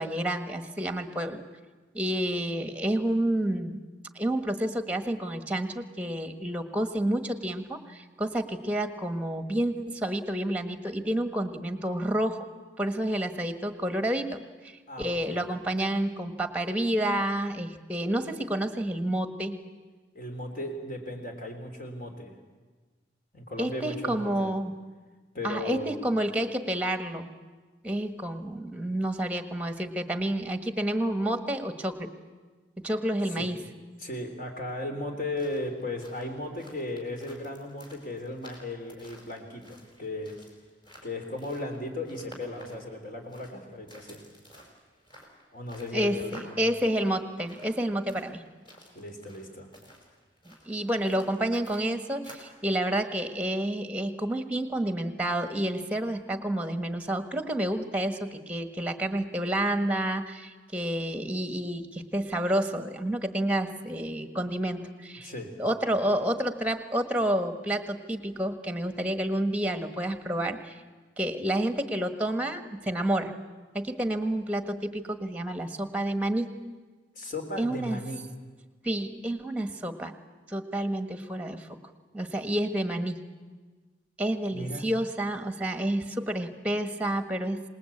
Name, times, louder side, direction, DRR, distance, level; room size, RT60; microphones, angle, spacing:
voice 1, 0.0-1.4 1.9-3.8 4.1-12.5 12.8-19.6 23.6-24.7 25.4-27.3 27.8-32.1 32.8-33.6 45.9-48.4 50.4-65.3 65.6-70.8 71.2-73.3 73.7-76.5 77.6-78.0 78.8-80.1 80.5-81.7 82.1-83.2 84.2-87.6, right 1 dB, 5° right, 9 dB, 1.4 m, -29 dB
voice 2, 14.9-15.4 20.1-22.3 23.3-24.5 25.3-26.0 33.4-33.5 34.0-40.3 41.0-44.2 45.5-46.6 48.9-49.7 65.2-65.5 77.2-78.2 84.5-84.8, left 1 dB, 45° left, 4 dB, 3.6 m, -36 dB
sound 1, 35.1-52.6, equal, 25° left, 4.8 m, -53 dB
26.5 x 20.0 x 8.6 m, 1.4 s
head